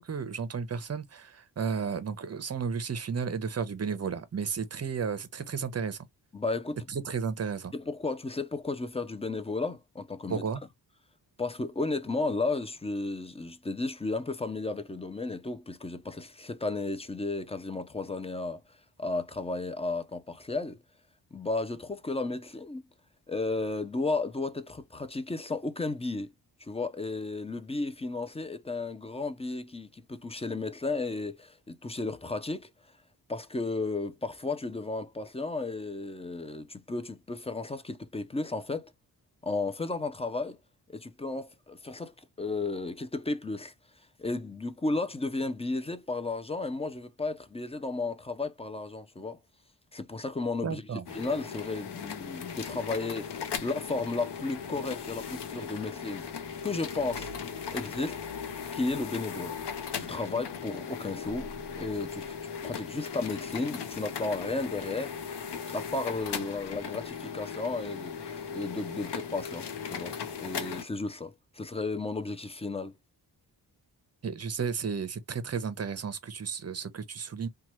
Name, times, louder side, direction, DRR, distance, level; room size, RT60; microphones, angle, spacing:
voice 1, 0.0-6.0 6.9-7.7 10.3-10.6 50.6-51.0 74.2-77.5, right 6 dB, 35° right, 0.6 m, -33 dB
voice 2, 6.3-6.8 7.7-10.5 11.4-18.6 19.0-20.8 21.3-22.8 23.3-26.3 26.6-32.7 33.3-38.9 39.4-40.6 40.9-43.7 44.2-49.4 49.9-56.3 56.6-57.3 57.7-58.2 58.7-59.6 60.0-65.1 65.7-72.9, left 3 dB, 15° left, 0.4 m, -34 dB
sound 1, 51.1-70.8, left 6 dB, 70° left, 0.7 m, -38 dB
2.9 x 2.3 x 2.9 m
wide cardioid pair, 90°, 42 cm